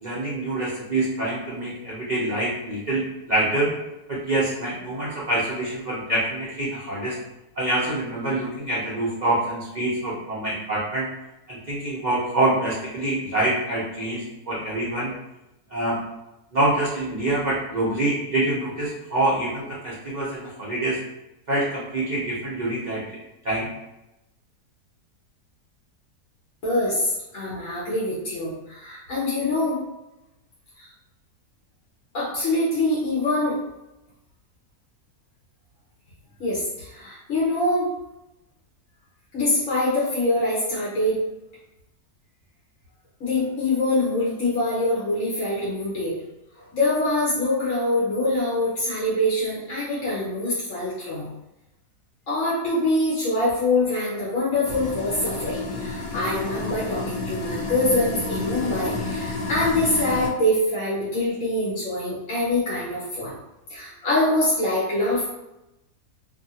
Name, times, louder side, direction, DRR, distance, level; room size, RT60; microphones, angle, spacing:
voice 1, 0.0-3.7 4.1-7.2 7.6-11.1 11.5-15.1 15.7-16.0 16.5-21.0 21.5-23.0 23.4-23.7, right 1 dB, 60° right, -8 dB, 0.4 m, -25 dB
voice 2, 26.6-29.8 30.8-30.9 32.1-33.6 36.4-37.9 39.3-41.2 43.2-46.1 46.7-51.3 52.3-63.3 63.7-65.3, left 1 dB, 55° left, -8 dB, 1.1 m, -24 dB
sound 1, 54.6-60.3, left 3 dB, 85° left, 1.2 m, -30 dB
2.7 x 2.6 x 2.7 m, 0.93 s
omnidirectional pair, 1.7 m